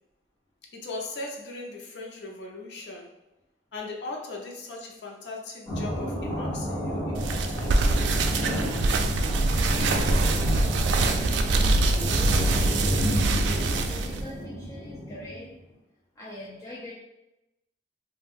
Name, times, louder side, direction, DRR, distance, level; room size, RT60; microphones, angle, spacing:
voice 1, 0.7-3.1 3.7-8.4, left 2 dB, 70° left, 0 dB, 0.5 m, -39 dB
sound 1, 5.7-15.5, equal, 5° right, 1.3 m, -30 dB
sound 2, 7.1-14.2, right 2 dB, 85° right, 0.3 m, -24 dB
voice 2, 11.0-12.7 13.6-15.5 16.2-16.9, left 1 dB, 20° left, -6 dB, 0.4 m, -43 dB
2.5 x 2.1 x 3.5 m, 0.95 s
head